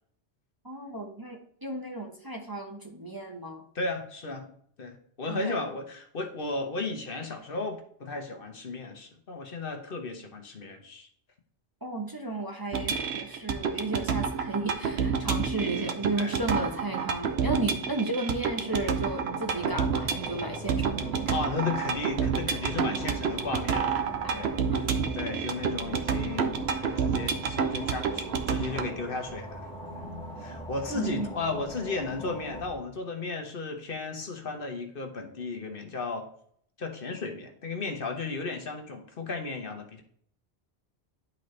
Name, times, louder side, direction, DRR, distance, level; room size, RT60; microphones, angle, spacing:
voice 1, 0.6-3.6 5.3-5.6 11.8-21.4 24.7-24.9 30.9-31.3, right 2 dB, 20° right, 1 dB, 0.9 m, -33 dB
voice 2, 3.7-4.5 4.8-11.1 16.2-16.4 21.3-23.9 24.3-24.8 25.1-29.7 30.4-36.3 36.8-40.0, left 3 dB, 55° left, 5 dB, 1.2 m, -34 dB
sound 1, 12.7-28.9, right 6 dB, 75° right, 1.0 m, -29 dB
sound 2, 19.3-32.6, equal, 5° left, 0.6 m, -44 dB
sound 3, 19.5-32.7, equal, 45° right, 1.5 m, -46 dB
11.0 x 4.0 x 3.2 m, 0.63 s
omnidirectional pair, 1.1 m